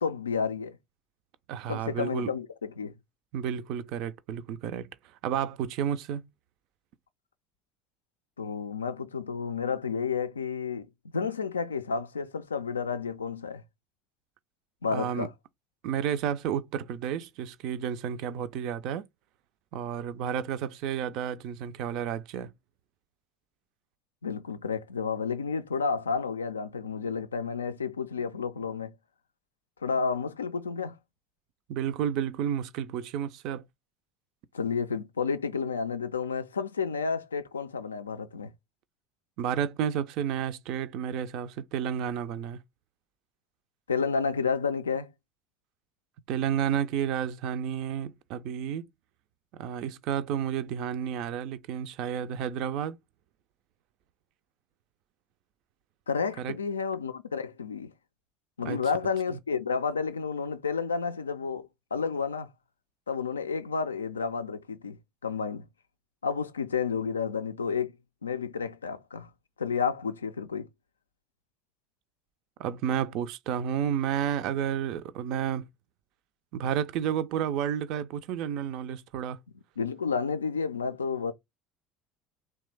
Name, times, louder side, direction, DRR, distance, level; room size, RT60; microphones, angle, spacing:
voice 1, 0.0-0.8 1.7-2.9 8.4-10.9 11.1-13.6 14.8-15.3 24.2-28.9 29.8-31.0 34.5-38.5 43.9-45.1 56.1-57.9 58.6-62.5 63.1-65.6 66.2-67.9 68.2-69.3 69.6-70.7 79.8-81.3, left 5 dB, 80° left, 0.3 m, -31 dB
voice 2, 1.5-2.3 3.3-4.9 5.2-6.3 14.9-15.3 15.8-19.0 19.7-22.5 31.7-33.6 39.4-42.6 46.3-48.9 49.5-53.0 56.4-56.5 58.7-58.8 59.3-59.4 72.6-75.7 76.5-79.4, right 9 dB, 55° right, 0.3 m, -31 dB
3.0 x 2.3 x 3.2 m
figure-of-eight pair, 65°, 0 cm